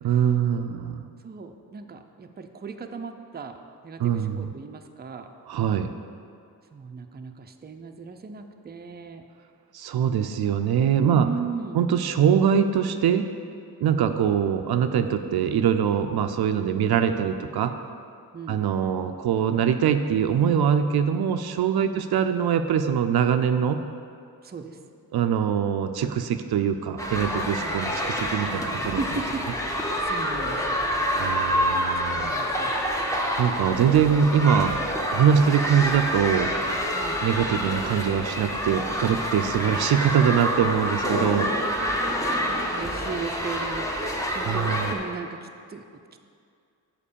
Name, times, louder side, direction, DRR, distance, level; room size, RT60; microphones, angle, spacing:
voice 1, 0.0-1.0 4.0-4.5 5.5-5.9 9.7-11.3 11.7-13.3 13.8-17.8 18.5-23.8 25.1-29.0 31.2-32.4 33.4-34.8 35.1-36.5 37.2-41.5 44.4-44.9, right 8 dB, 75° right, 8 dB, 0.5 m, -23 dB
voice 2, 1.2-3.6 3.8-5.3 6.7-9.3 11.0-11.8 14.0-14.2 18.3-18.6 21.8-22.1 24.4-24.8 27.6-27.8 29.0-29.5 30.1-30.8 32.0-32.7 36.9-37.2 42.0-46.0, right 5 dB, 25° right, 5 dB, 0.5 m, -37 dB
sound 1, 27.0-45.0, equal, 10° left, 1.0 m, -27 dB
7.5 x 4.6 x 6.8 m, 2.4 s
cardioid pair, 85°, 38 cm